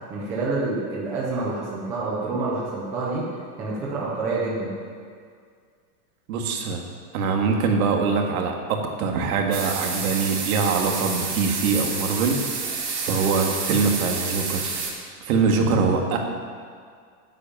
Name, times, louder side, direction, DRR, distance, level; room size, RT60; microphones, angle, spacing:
voice 1, 0.1-3.3 3.6-4.8, right 3 dB, 5° right, -5 dB, 0.3 m, -27 dB
voice 2, 6.3-6.8 7.1-12.4 13.0-14.7 15.3-16.2, right 4 dB, 60° right, 2 dB, 2.0 m, -23 dB
sound 1, 9.5-14.9, right 5 dB, 85° right, 3.5 m, -29 dB
10.5 x 8.5 x 7.1 m, 2.1 s
supercardioid pair, 155°, 47 cm